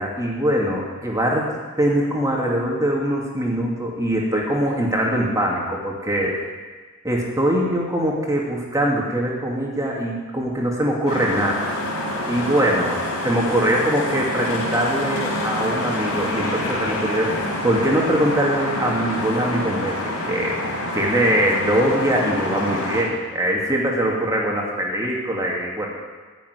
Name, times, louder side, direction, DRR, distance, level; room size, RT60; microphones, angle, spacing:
voice 1, 0.0-1.5 1.8-6.3 7.0-11.7 12.3-20.0 20.2-20.6 20.9-25.9, right 1 dB, 15° right, -2 dB, 2.6 m, -22 dB
sound 1, 11.1-23.0, left 1 dB, 85° left, 4.2 m, -27 dB
15.5 x 7.2 x 9.8 m, 1.4 s
head